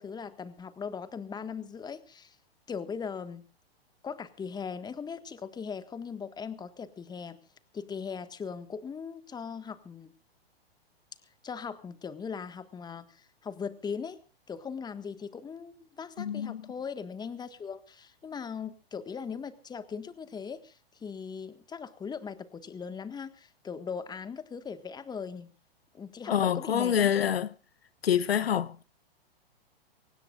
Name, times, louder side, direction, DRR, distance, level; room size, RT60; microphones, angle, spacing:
voice 1, 0.0-2.4 2.7-3.4 4.0-7.4 7.7-10.1 11.4-14.2 14.5-25.5 25.9-27.1, left 6 dB, 15° left, 1.6 m, -39 dB
voice 2, 16.2-16.6 26.3-27.5 28.0-28.8, left 9 dB, 75° left, 1.0 m, -26 dB
24.5 x 18.5 x 2.5 m
hypercardioid pair, 110°, 31 cm